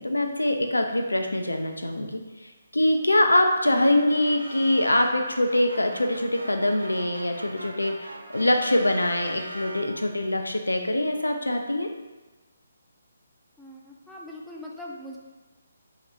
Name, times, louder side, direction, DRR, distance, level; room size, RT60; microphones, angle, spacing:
voice 1, 0.0-11.9, left 1 dB, 85° left, 4 dB, 0.3 m, -24 dB
sound 1, 3.7-10.2, right 1 dB, 75° right, 0.5 m, -41 dB
voice 2, 13.6-15.2, left 1 dB, ahead, -5 dB, 0.3 m, -41 dB
2.6 x 2.4 x 3.1 m, 1.2 s
figure-of-eight pair, 145°, 0 cm